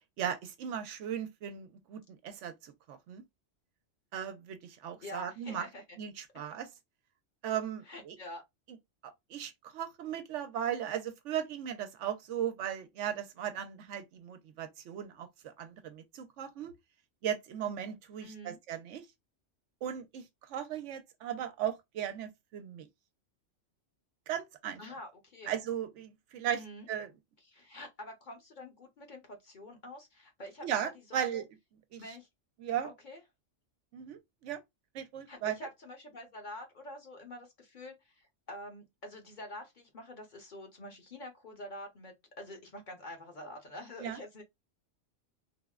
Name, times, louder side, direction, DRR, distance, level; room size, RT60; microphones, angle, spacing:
voice 1, 0.2-3.2 4.1-5.7 6.0-6.7 7.4-8.2 9.0-16.7 17.2-19.0 19.8-20.2 20.5-22.9 24.3-24.8 25.5-26.6 26.9-27.1 30.6-31.4 31.9-32.0 32.6-32.9 33.9-34.6 34.9-35.6 44.0-44.2, right 9 dB, 85° right, 0.9 m, -37 dB
voice 2, 5.0-6.0 7.8-8.4 18.2-18.6 24.8-25.5 26.5-26.8 27.4-31.4 32.0-32.3 32.8-33.2 35.3-44.4, left 1 dB, 45° left, 0.9 m, -47 dB
3.5 x 2.0 x 2.3 m
omnidirectional pair, 1.2 m